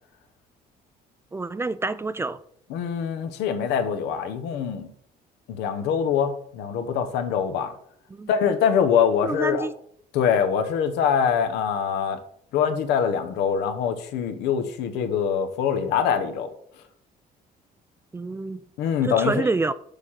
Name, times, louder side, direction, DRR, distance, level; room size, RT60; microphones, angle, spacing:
voice 1, 1.3-2.4 8.1-8.3 9.2-9.7 18.1-18.6 19.0-19.7, right 3 dB, 15° right, 0.3 m, -27 dB
voice 2, 2.7-4.9 5.5-7.7 8.3-9.7 10.1-12.2 12.5-16.5 18.8-19.5, left 7 dB, 90° left, 1.0 m, -24 dB
6.7 x 4.9 x 5.7 m
cardioid pair, 110°, 17 cm